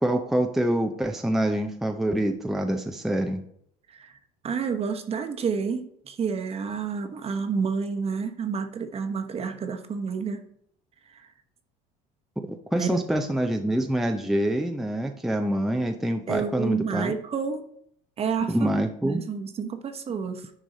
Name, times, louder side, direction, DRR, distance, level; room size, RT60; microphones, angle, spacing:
voice 1, 0.0-3.4 12.4-17.1 18.5-19.3, right 1 dB, ahead, 4 dB, 0.6 m, -26 dB
voice 2, 4.4-10.4 11.1-11.3 12.8-13.0 16.3-17.7 18.2-20.5, right 6 dB, 40° right, 6 dB, 1.1 m, -29 dB
10.0 x 4.8 x 4.1 m, 0.68 s
cardioid pair, 105°, 17 cm